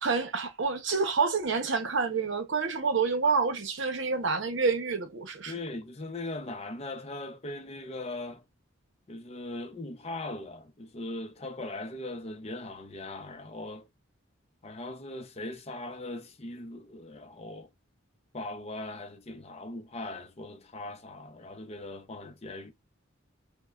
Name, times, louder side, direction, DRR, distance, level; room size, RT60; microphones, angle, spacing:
voice 1, 0.0-5.5, right 4 dB, 60° right, 0.8 m, -28 dB
voice 2, 5.5-8.4 9.1-13.9 14.6-17.7 18.3-22.7, left 2 dB, 30° left, 0.6 m, -39 dB
5.2 x 2.2 x 2.3 m
head